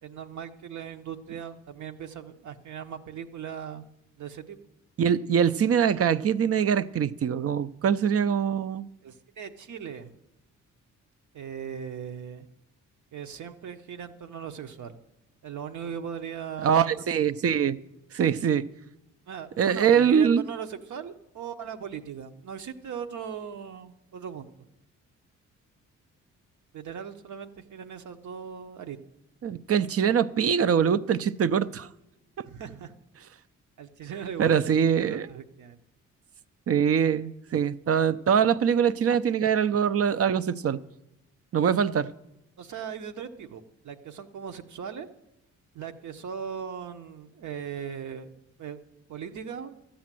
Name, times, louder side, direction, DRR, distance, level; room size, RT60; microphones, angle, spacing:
voice 1, 0.0-3.8 4.2-4.6 9.0-10.1 11.3-12.5 13.1-15.0 15.4-17.0 19.3-24.5 26.7-29.0 32.4-32.9 33.8-35.8 42.6-45.1 45.7-48.3 48.6-48.8 49.1-49.7, right 7 dB, 65° right, 1.0 m, -38 dB
voice 2, 5.0-8.9 16.6-17.8 18.1-18.6 19.6-20.5 29.4-31.9 32.4-32.5 34.4-35.3 36.7-40.8 41.5-42.1, right 7 dB, 45° right, 0.6 m, -23 dB
13.0 x 8.6 x 7.6 m
cardioid pair, 75°, 32 cm